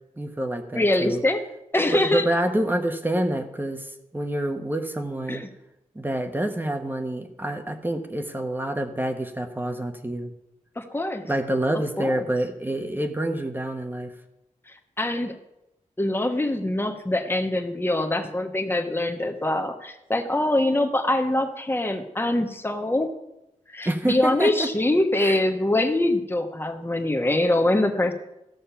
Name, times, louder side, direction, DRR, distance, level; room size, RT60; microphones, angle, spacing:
voice 1, 0.2-1.2 1.9-5.4 5.9-10.3 11.3-14.1 23.8-24.7 25.2-25.4, right 1 dB, 15° right, 5 dB, 1.1 m, -27 dB
voice 2, 0.7-1.4 1.7-2.3 5.3-5.5 10.8-11.2 11.7-12.2 15.0-15.4 16.0-23.1 23.7-28.1, left 1 dB, 15° left, 5 dB, 1.3 m, -24 dB
14.5 x 6.6 x 5.7 m, 0.89 s
wide cardioid pair, 90°, 14 cm